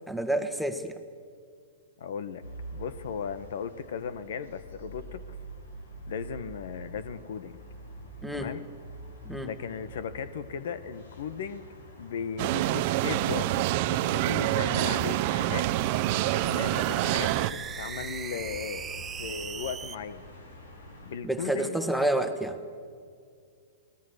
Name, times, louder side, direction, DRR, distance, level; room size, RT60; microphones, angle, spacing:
voice 1, 0.1-1.0 8.2-8.5 9.2-9.5 21.2-22.6, right 1 dB, ahead, 6 dB, 1.6 m, -29 dB
voice 2, 2.0-2.4 2.7-5.2 6.1-7.5 8.3-8.6 9.4-11.7 12.0-15.7 16.4-20.2 21.0-22.1, left 6 dB, 65° left, 15 dB, 1.2 m, -37 dB
sound 1, 2.4-21.2, equal, 85° left, 5.0 m, -46 dB
sound 2, 12.4-17.5, right 15 dB, 50° right, 0.8 m, -27 dB
sound 3, 14.6-20.0, right 7 dB, 20° right, 0.9 m, -40 dB
25.0 x 19.0 x 6.5 m, 2.2 s
hypercardioid pair, 125°, 0 cm